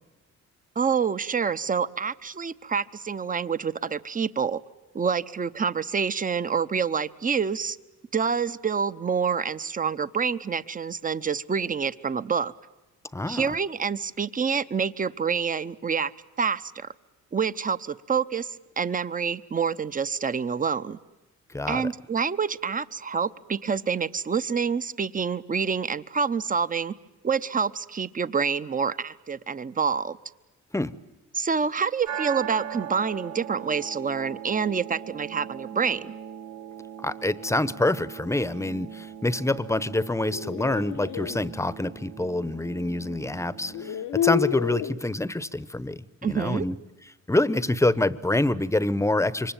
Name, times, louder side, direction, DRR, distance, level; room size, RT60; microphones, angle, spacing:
voice 1, 0.8-4.6 4.9-7.8 8.1-12.5 13.3-16.1 16.4-16.9 17.3-21.0 21.7-26.9 27.2-30.2 31.3-36.1 46.2-46.7, right 6 dB, 25° right, 15 dB, 0.9 m, -27 dB
voice 2, 13.1-13.5 21.5-21.9 30.7-30.9 37.0-46.8 47.3-49.5, left 2 dB, 10° left, 16 dB, 0.9 m, -26 dB
sound 1, 32.1-44.1, right 9 dB, 70° right, 1.0 m, -40 dB
sound 2, 40.0-41.4 42.8-42.9 43.6-45.0, left 11 dB, 75° left, 1.1 m, -29 dB
27.0 x 24.0 x 9.0 m, 1.1 s
cardioid pair, 90°, 30 cm